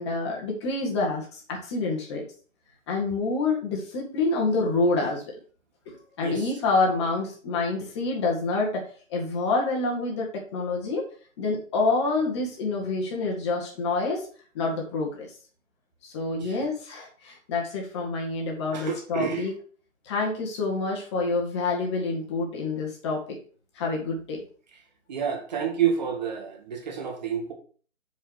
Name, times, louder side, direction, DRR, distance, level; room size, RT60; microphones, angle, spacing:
voice 1, 0.0-2.2 2.9-5.2 5.9-11.1 11.4-14.3 14.6-15.3 16.0-19.5 20.0-23.2 23.8-24.4, left 3 dB, 20° left, -1 dB, 1.7 m, -27 dB
voice 2, 18.7-19.5 25.1-27.5, right 8 dB, 35° right, 2 dB, 1.9 m, -29 dB
6.5 x 4.9 x 6.3 m, 0.42 s
figure-of-eight pair, 145°, 40 cm